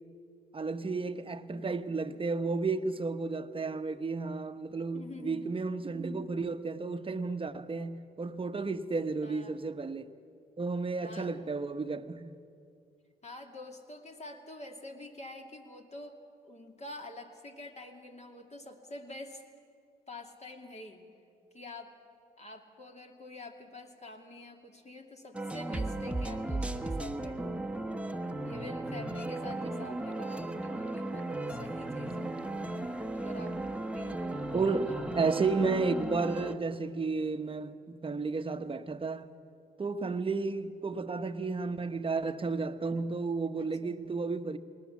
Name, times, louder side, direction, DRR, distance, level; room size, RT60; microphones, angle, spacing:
voice 1, 0.5-10.1 10.6-12.4 29.9-30.0 34.5-39.3 39.8-44.6, right 4 dB, 30° right, 1.1 m, -32 dB
voice 2, 4.9-5.5 9.2-9.6 11.0-11.4 13.2-16.2 16.4-19.4 20.1-21.0 21.5-21.9 22.4-27.6 28.4-32.3 33.1-33.6 33.9-35.3 43.6-44.0, left 2 dB, 35° left, 2.5 m, -47 dB
sound 1, 25.3-36.6, right 2 dB, 5° right, 1.2 m, -36 dB
20.5 x 18.5 x 7.3 m
supercardioid pair, 55°, 19 cm